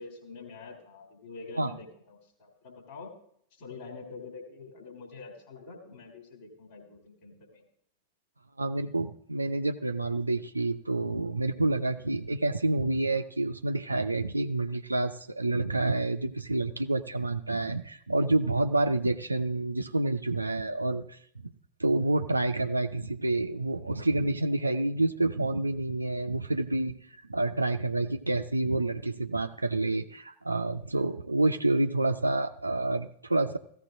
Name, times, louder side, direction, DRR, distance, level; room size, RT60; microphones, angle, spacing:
voice 1, 0.0-3.2 3.5-7.7, left 4 dB, 50° left, 1 dB, 3.1 m, -46 dB
voice 2, 8.6-21.2 21.8-33.6, right 2 dB, 80° right, 8 dB, 0.4 m, -28 dB
16.0 x 14.0 x 2.6 m, 0.67 s
figure-of-eight pair, 90°, 0 cm